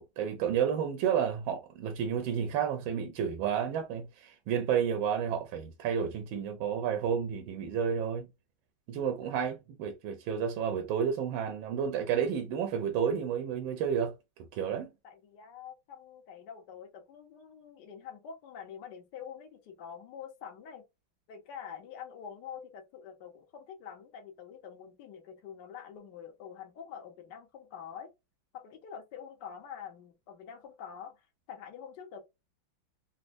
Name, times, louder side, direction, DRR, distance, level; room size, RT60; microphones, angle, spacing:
voice 1, 0.0-8.3 8.9-14.1 14.5-14.9, right 7 dB, 75° right, 1.3 m, -31 dB
voice 2, 15.0-20.8 21.3-28.1 28.5-31.2 31.5-32.2, left 7 dB, 65° left, 1.3 m, -46 dB
4.2 x 2.1 x 2.5 m
omnidirectional pair, 2.3 m